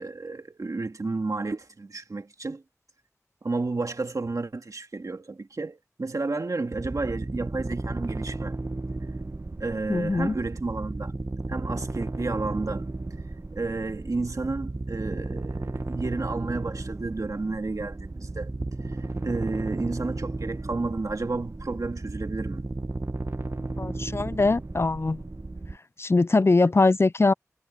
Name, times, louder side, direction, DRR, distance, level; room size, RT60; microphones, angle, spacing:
voice 1, 0.0-2.6 3.4-8.6 9.6-11.1 11.5-12.9 13.5-18.5 18.8-19.0 19.2-22.6, right 3 dB, 80° right, 2.0 m, -31 dB
sound 1, 6.7-25.8, right 2 dB, 55° right, 1.5 m, -34 dB
voice 2, 9.9-10.3 23.8-25.2 26.0-27.3, left 3 dB, 50° left, 0.4 m, -22 dB
wide cardioid pair, 50°, 6 cm